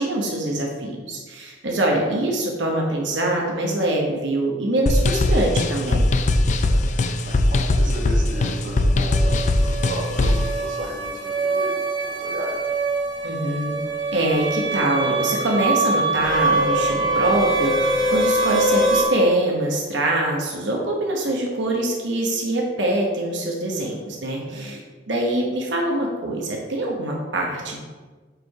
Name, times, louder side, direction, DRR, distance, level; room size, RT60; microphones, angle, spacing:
voice 1, 0.0-6.0 13.2-13.7 14.1-24.8 25.1-27.8, right 1 dB, 80° right, -1 dB, 1.0 m, -24 dB
sound 1, 4.9-10.5, left 2 dB, 40° left, 0.4 m, -20 dB
voice 2, 6.5-11.8 12.1-12.6 23.7-23.9 24.4-24.8, right 1 dB, 45° right, -2 dB, 1.2 m, -35 dB
sound 2, 8.3-19.0, right 2 dB, 30° right, 0.9 m, -24 dB
4.9 x 4.7 x 4.8 m, 1.3 s
head